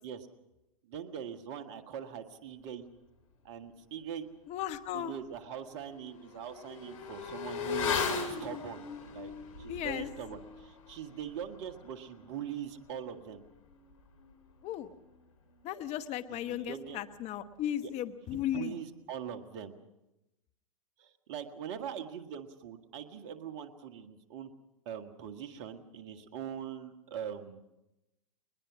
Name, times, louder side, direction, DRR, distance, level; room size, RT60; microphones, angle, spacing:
voice 1, 0.8-2.8 3.4-4.3 4.9-9.3 9.6-13.4 16.3-17.0 17.8-17.9 18.3-19.7 21.0-24.5 24.9-27.7, right 8 dB, 50° right, 8 dB, 1.8 m, -42 dB
voice 2, 4.5-5.2 9.7-10.1 14.6-14.9 15.6-18.7, left 11 dB, 35° left, 10 dB, 1.2 m, -36 dB
Motorcycle / Accelerating revving vroom, 4.7-4.8 5.2-15.2 15.5-15.6, left 6 dB, 65° left, 3.2 m, -39 dB
22.0 x 21.0 x 6.2 m, 0.94 s
hypercardioid pair, 105°, 18 cm